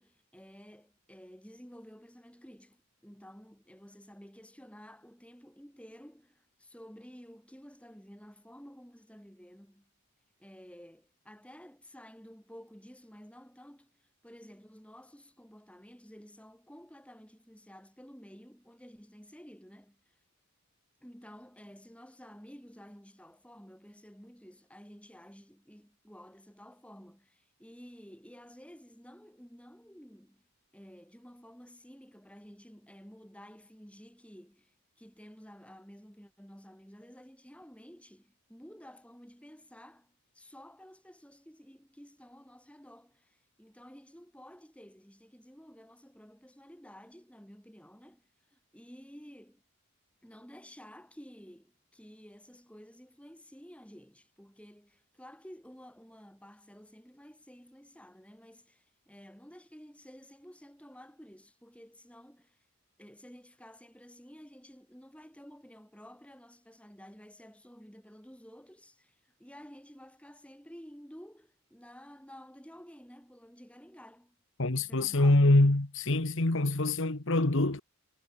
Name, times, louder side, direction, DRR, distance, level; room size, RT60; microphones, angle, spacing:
voice 1, 0.0-9.9 10.4-20.1 21.0-30.5 30.7-49.6 50.2-62.6 63.0-74.4 74.7-75.5, equal, 5° left, 4.6 m, -52 dB
voice 2, 74.6-77.8, left 2 dB, 55° left, 1.5 m, -25 dB
head